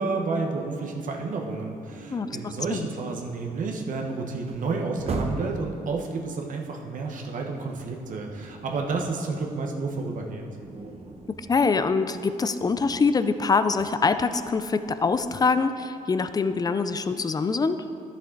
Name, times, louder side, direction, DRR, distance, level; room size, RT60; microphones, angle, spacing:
voice 1, 0.0-10.5, right 3 dB, 65° right, 1 dB, 1.1 m, -30 dB
sound 1, 1.9-5.7 7.1-9.2 9.5-15.3, right 2 dB, 45° right, 1.0 m, -40 dB
voice 2, 2.1-2.9 11.5-17.8, left 4 dB, 25° left, 11 dB, 0.4 m, -24 dB
11.0 x 6.8 x 3.9 m, 2.5 s
cardioid pair, 85°, 14 cm